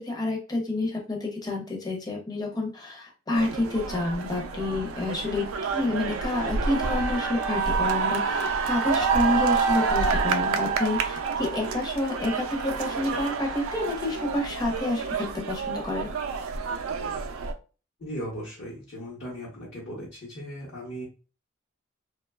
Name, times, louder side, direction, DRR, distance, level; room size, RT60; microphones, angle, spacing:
voice 1, 0.0-16.1, left 2 dB, 20° left, 0 dB, 0.6 m, -29 dB
sound 1, 3.3-17.5, right 5 dB, 85° right, 0.3 m, -28 dB
voice 2, 18.0-21.0, equal, 60° left, -7 dB, 0.9 m, -37 dB
2.9 x 2.2 x 2.2 m, 0.35 s
head